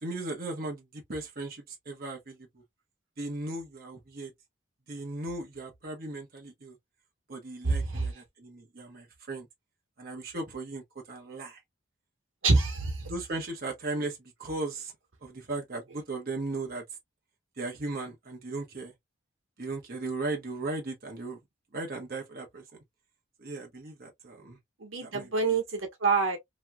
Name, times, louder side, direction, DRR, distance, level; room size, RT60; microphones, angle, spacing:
voice 1, 0.0-2.6 3.2-4.3 4.9-6.8 7.3-9.5 10.0-10.8 11.1-11.6 13.1-14.9 15.2-16.8 17.6-18.9 19.6-21.4 21.7-22.6 23.4-24.6 25.0-25.6, right 2 dB, 50° right, 1.0 m, -37 dB
voice 2, 7.6-8.1 12.4-13.0 24.8-26.4, right 4 dB, 80° right, 1.2 m, -26 dB
3.0 x 2.8 x 2.3 m
head